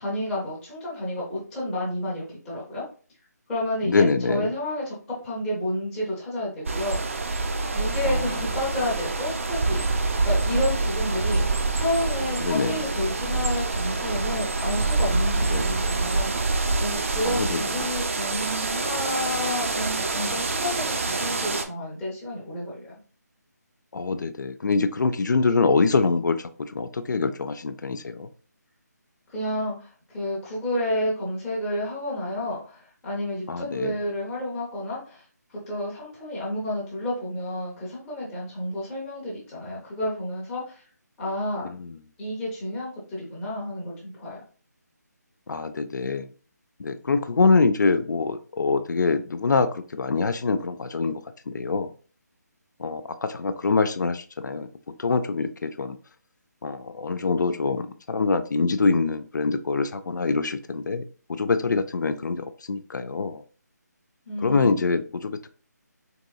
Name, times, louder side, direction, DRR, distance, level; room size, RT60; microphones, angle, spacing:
voice 1, 0.0-2.8 3.5-7.0 7.7-11.5 11.7-23.0 29.3-35.2 35.5-40.9 41.2-41.7 42.2-44.4 64.3-64.8, left 1 dB, 5° left, -8 dB, 0.6 m, -30 dB
voice 2, 3.8-4.5 12.4-12.8 15.5-15.8 17.3-17.6 23.9-28.3 33.5-33.9 45.5-46.3 46.8-51.2 51.5-51.9 52.8-54.7 55.0-56.0 56.6-61.0 61.3-63.4 64.4-65.5, left 4 dB, 85° left, 10 dB, 0.4 m, -24 dB
sound 1, 6.7-21.6, right 3 dB, 45° right, 0.4 m, -26 dB
3.7 x 3.0 x 2.2 m, 0.40 s
hypercardioid pair, 170°, 10 cm